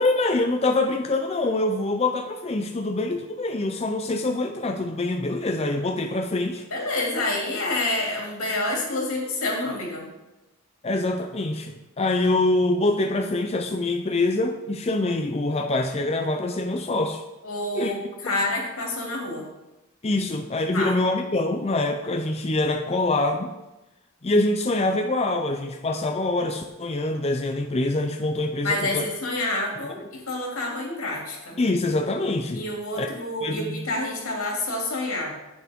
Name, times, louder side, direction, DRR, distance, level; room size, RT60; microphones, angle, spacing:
voice 1, 0.0-6.7 10.8-17.2 17.7-17.9 20.0-23.5 24.2-29.1 31.6-32.6 32.9-33.1 33.4-33.8, left 2 dB, 30° left, 5 dB, 0.5 m, -25 dB
voice 2, 6.7-10.1 17.4-19.5 20.7-20.9 28.6-31.6 32.5-35.4, left 2 dB, 90° left, -2 dB, 2.8 m, -28 dB
9.6 x 8.3 x 3.6 m, 1.0 s
head